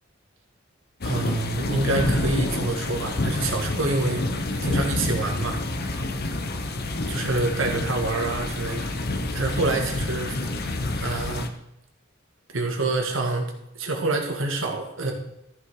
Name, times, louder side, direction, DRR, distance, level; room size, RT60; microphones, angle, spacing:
sound 1, 1.0-11.5, left 2 dB, 50° left, 0.9 m, -28 dB
voice 1, 1.0-5.6 7.1-11.5 12.5-15.1, right 2 dB, 70° right, 3 dB, 1.8 m, -27 dB
13.5 x 5.6 x 4.9 m, 0.85 s
head